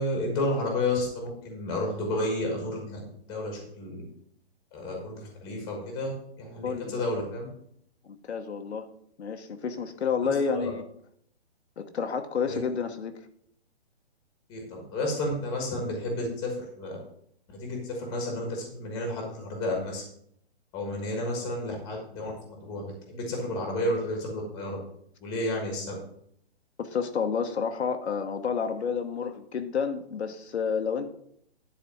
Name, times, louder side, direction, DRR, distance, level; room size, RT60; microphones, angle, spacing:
voice 1, 0.0-3.0 3.3-4.0 4.7-7.5 10.2-10.7 12.5-12.6 14.5-17.0 17.5-20.0 20.7-22.3 22.6-24.8 25.2-25.9, left 1 dB, 10° left, 1 dB, 1.4 m, -31 dB
voice 2, 6.6-7.1 8.0-8.9 9.2-10.8 11.8-13.2 26.8-31.1, left 6 dB, 80° left, 6 dB, 1.1 m, -30 dB
10.5 x 4.2 x 5.7 m, 0.69 s
hypercardioid pair, 170°, 32 cm